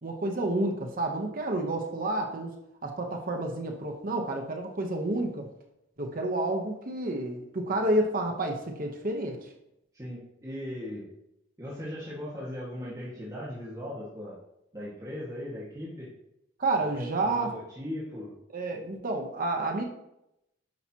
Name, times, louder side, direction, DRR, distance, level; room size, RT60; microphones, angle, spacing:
voice 1, 0.0-2.6 2.8-5.5 6.0-9.5 16.6-17.5 18.5-19.8, right 2 dB, 45° right, 3 dB, 1.0 m, -30 dB
voice 2, 9.9-11.1 11.6-14.4 14.7-16.1 16.7-18.3, left 1 dB, 20° right, -8 dB, 1.7 m, -38 dB
10.5 x 5.7 x 2.9 m, 0.82 s
head